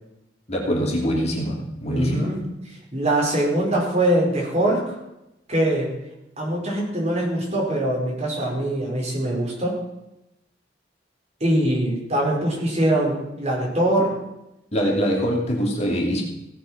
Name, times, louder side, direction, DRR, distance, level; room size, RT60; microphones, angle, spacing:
voice 1, 0.5-2.3 14.7-16.2, equal, 35° left, -1 dB, 2.7 m, -23 dB
voice 2, 1.9-2.4 2.7-4.9 5.5-5.9 6.4-9.8 11.4-14.1, right 1 dB, 35° right, -2 dB, 5.2 m, -22 dB
17.0 x 8.4 x 5.9 m, 0.90 s
head